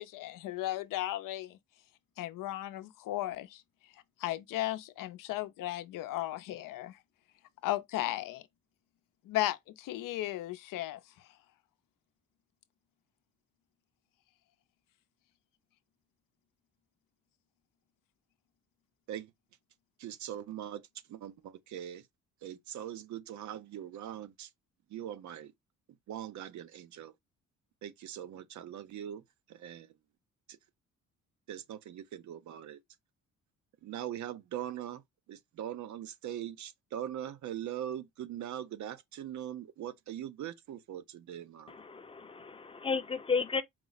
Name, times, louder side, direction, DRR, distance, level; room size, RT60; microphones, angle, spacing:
voice 1, 0.0-1.6 2.2-3.6 4.2-7.0 7.6-8.4 9.2-11.3, left 15 dB, 85° left, 0.6 m, -35 dB
voice 2, 20.0-22.1 22.4-24.5 24.9-25.5 26.1-27.2 27.8-29.2 29.5-30.0 30.5-30.6 31.5-32.8 33.8-35.0 35.3-41.8, right 10 dB, 65° right, 0.6 m, -41 dB
voice 3, 41.7-43.6, left 5 dB, 15° left, 0.5 m, -33 dB
4.6 x 2.0 x 3.9 m
cardioid pair, 135°, 32 cm